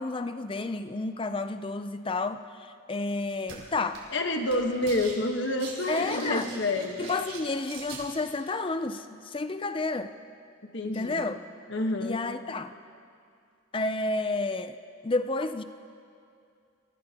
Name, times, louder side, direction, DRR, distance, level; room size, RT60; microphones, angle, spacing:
voice 1, 0.0-4.0 5.9-6.5 7.0-10.1 10.8-11.4 12.0-12.7 13.7-14.8 15.0-15.6, left 3 dB, 25° left, 10 dB, 0.5 m, -31 dB
sound 1, 3.5-3.6 3.9-4.2 4.5-5.1 5.4-8.0, right 5 dB, 65° right, 4.6 m, -42 dB
voice 2, 4.1-7.1 10.6-11.2 11.7-12.2, left 1 dB, 60° left, 4 dB, 1.3 m, -28 dB
28.0 x 16.5 x 2.9 m, 2.4 s
head